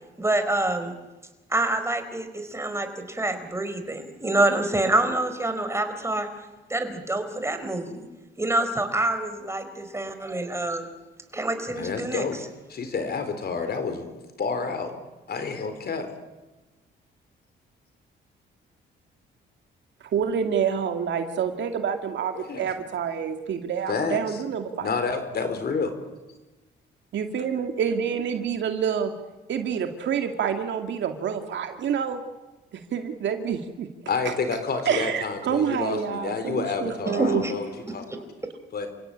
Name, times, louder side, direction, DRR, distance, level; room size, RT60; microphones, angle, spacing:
voice 1, 0.2-0.9 1.5-6.3 6.7-8.0 8.4-10.9 11.3-12.2 37.1-37.5, right 2 dB, 15° right, 8 dB, 4.4 m, -26 dB
voice 2, 11.8-12.4 12.7-14.9 15.3-16.1 22.3-22.7 23.9-24.4 24.8-25.9 34.1-38.2 38.7-38.9, left 5 dB, 55° left, 9 dB, 4.3 m, -29 dB
voice 3, 20.1-24.9 27.1-29.1 29.5-32.2 32.7-33.9 34.3-34.4 34.9-37.4, right 7 dB, 70° right, 6 dB, 2.3 m, -27 dB
29.0 x 17.0 x 8.8 m, 1.1 s
cardioid pair, 90°, 20 cm